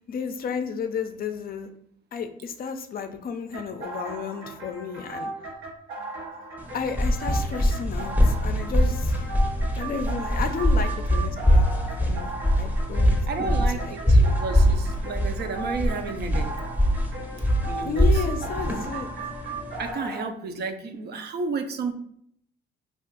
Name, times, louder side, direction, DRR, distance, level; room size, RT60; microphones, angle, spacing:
voice 1, 0.1-1.7 2.1-5.3 6.7-9.3 9.7-11.7 12.0-13.2 13.4-14.2 17.8-19.1, left 6 dB, 50° left, 7 dB, 0.4 m, -32 dB
sound 1, 3.5-20.2, right 2 dB, 90° right, 0.9 m, -37 dB
sound 2, 6.6-19.9, equal, 10° right, 0.7 m, -22 dB
voice 2, 13.3-16.5 17.6-18.1 19.8-21.9, right 4 dB, 55° right, 7 dB, 0.5 m, -32 dB
2.5 x 2.3 x 3.6 m, 0.69 s
cardioid pair, 90°, 20 cm